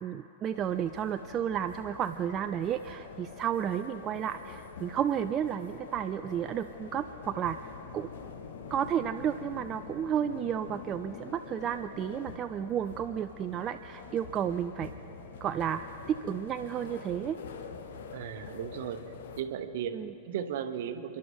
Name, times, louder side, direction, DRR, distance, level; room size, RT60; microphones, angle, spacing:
voice 1, 0.0-8.1 8.7-14.9 15.4-17.4 19.9-20.1, right 9 dB, 30° right, 9 dB, 0.3 m, -32 dB
sound 1, 0.5-19.4, left 5 dB, 60° left, 0.9 m, -45 dB
voice 2, 18.1-19.0 19.4-20.0 20.2-21.2, right 9 dB, 55° right, 9 dB, 0.9 m, -35 dB
28.0 x 11.0 x 3.5 m, 2.6 s
figure-of-eight pair, 90°, 0 cm